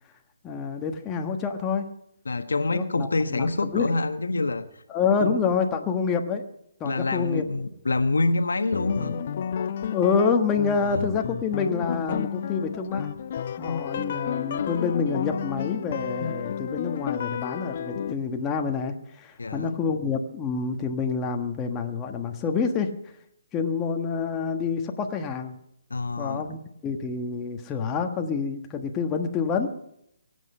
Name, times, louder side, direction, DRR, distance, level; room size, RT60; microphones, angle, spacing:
voice 1, 0.4-1.9 2.7-3.8 4.9-6.4 6.8-7.4 9.9-13.1 13.6-22.9 23.5-25.6 26.2-29.7, left 5 dB, 15° left, 3 dB, 1.4 m, -27 dB
voice 2, 2.2-4.7 5.2-5.3 6.8-9.2 10.8-11.1 13.6-13.7 19.4-19.8 25.9-26.4, left 3 dB, 85° left, 8 dB, 1.3 m, -26 dB
sound 1, 8.7-18.1, left 8 dB, 45° left, 0.6 m, -31 dB
23.5 x 8.2 x 5.6 m, 0.76 s
hypercardioid pair, 155°, 0 cm